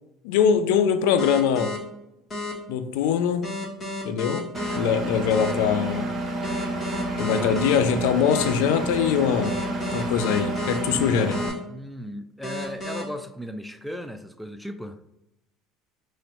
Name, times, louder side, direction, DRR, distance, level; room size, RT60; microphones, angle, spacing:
voice 1, 0.2-1.8 2.7-3.5 4.0-6.1 7.2-9.6 9.9-11.4, left 7 dB, 75° left, 0.3 m, -23 dB
sound 1, 1.2-1.8 2.3-2.5 3.4-4.8 5.3-5.5 6.4-7.8 8.3-8.5 9.4-10.8 11.3-11.5 12.4-13.0, left 2 dB, 40° left, 1.3 m, -32 dB
Engine, 4.5-11.5, right 1 dB, 35° right, 1.1 m, -30 dB
voice 2, 7.3-7.7 11.7-15.0, equal, ahead, 0.4 m, -36 dB
3.1 x 2.7 x 4.2 m
hypercardioid pair, 80°, 0 cm